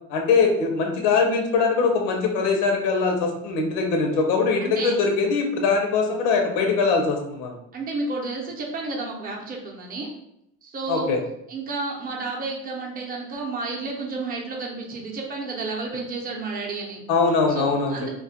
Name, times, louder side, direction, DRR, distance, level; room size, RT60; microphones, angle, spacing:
voice 1, 0.1-7.6 10.9-11.2 17.1-18.1, left 4 dB, 90° left, 2 dB, 0.6 m, -22 dB
voice 2, 4.6-4.9 7.7-10.1 10.6-11.1 11.5-17.0 17.5-18.1, right 3 dB, 25° right, -1 dB, 0.6 m, -31 dB
2.3 x 2.1 x 2.8 m, 0.79 s
cardioid pair, 100°, 32 cm